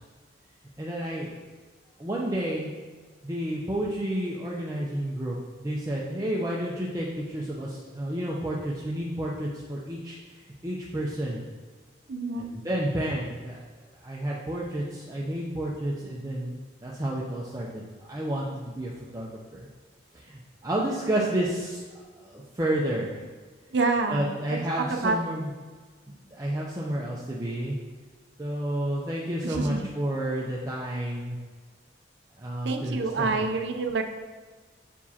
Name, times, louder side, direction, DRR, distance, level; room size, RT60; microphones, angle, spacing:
voice 1, 0.8-1.4 2.0-2.7 3.2-10.2 10.6-11.4 12.4-13.6 14.0-19.7 20.1-21.8 22.2-23.2 24.1-25.5 26.3-27.8 28.4-31.4 32.4-33.3, right 1 dB, 20° right, -5 dB, 0.6 m, -30 dB
voice 2, 12.1-12.5 23.7-24.3 24.9-25.2 29.4-29.8 32.6-34.0, right 3 dB, 65° right, 4 dB, 0.5 m, -27 dB
7.1 x 4.7 x 2.8 m, 1.4 s
head